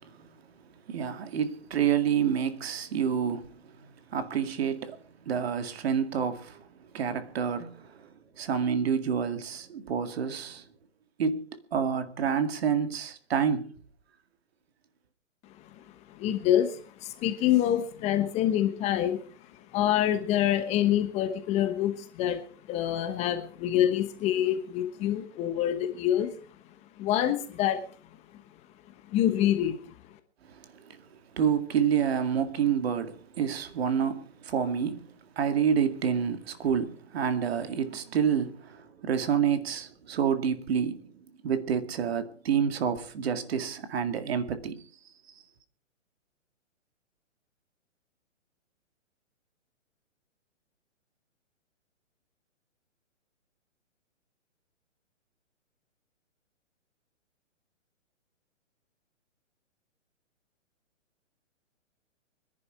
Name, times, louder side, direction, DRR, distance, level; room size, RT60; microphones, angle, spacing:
voice 1, 0.9-3.5 4.1-5.0 5.3-6.6 6.9-7.8 8.4-10.6 11.2-11.4 11.7-13.7 31.4-35.0 35.4-38.6 39.0-41.0 41.4-44.8, right 7 dB, 55° right, 2.2 m, -28 dB
voice 2, 15.6-22.4 22.7-26.4 27.0-27.9 29.1-30.0, left 11 dB, 15° left, 1.1 m, -26 dB
24.5 x 11.0 x 4.8 m
hypercardioid pair, 150°, 38 cm